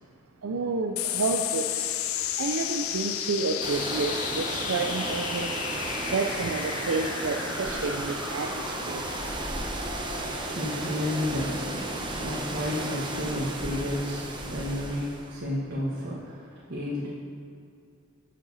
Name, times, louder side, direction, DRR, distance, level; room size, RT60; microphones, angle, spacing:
voice 1, 0.4-1.9 2.4-5.6 6.1-9.1, right 3 dB, 85° right, 2 dB, 0.6 m, -30 dB
sound 1, 1.0-15.8, left 10 dB, 85° left, 0.5 m, -35 dB
sound 2, 3.6-15.3, right 2 dB, 25° right, 1.0 m, -34 dB
voice 2, 10.5-17.1, left 1 dB, 55° right, -7 dB, 1.5 m, -32 dB
12.0 x 7.6 x 4.1 m, 2.4 s
head